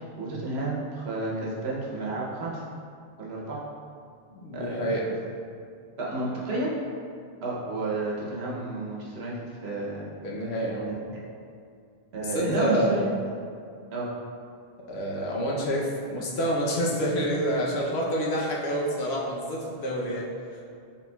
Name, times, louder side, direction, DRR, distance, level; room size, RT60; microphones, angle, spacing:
voice 1, 0.2-2.6 3.2-3.6 4.5-4.9 6.0-6.7 7.4-10.1 10.9-11.2 12.1-13.0 13.9-14.1, right 2 dB, 85° right, -4 dB, 1.1 m, -31 dB
voice 2, 4.3-5.1 10.2-11.0 12.2-12.9 14.9-20.3, equal, 85° left, -3 dB, 1.0 m, -28 dB
4.2 x 3.6 x 2.2 m, 2.3 s
omnidirectional pair, 1.0 m